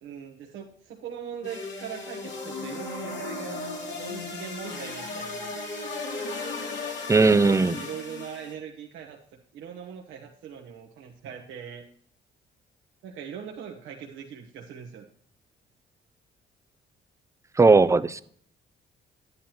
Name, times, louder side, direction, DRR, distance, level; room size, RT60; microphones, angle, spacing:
voice 1, 0.0-3.6 3.9-5.5 7.1-9.2 9.5-11.8 13.0-15.1, right 8 dB, 85° right, 0 dB, 1.1 m, -40 dB
sound 1, 1.4-8.5, left 3 dB, 65° left, 2.6 m, -36 dB
voice 2, 7.1-7.7 17.6-18.2, right 3 dB, 15° right, 14 dB, 0.4 m, -18 dB
11.5 x 9.5 x 2.9 m, 0.62 s
cardioid pair, 90°, 20 cm